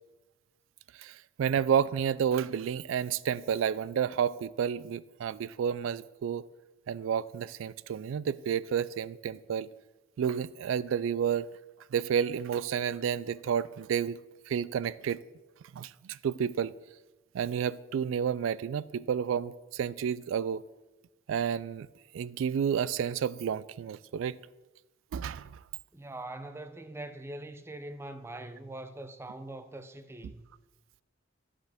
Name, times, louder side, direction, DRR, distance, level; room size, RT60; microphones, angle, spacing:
voice 1, 1.0-6.5 6.9-9.7 10.2-11.5 11.9-14.2 14.5-15.2 15.7-16.7 17.3-20.6 21.3-21.9 22.1-24.4 25.1-25.6, right 8 dB, 80° right, 0.3 m, -30 dB
voice 2, 25.9-30.5, right 1 dB, 15° right, 0.5 m, -42 dB
9.9 x 8.0 x 3.5 m
head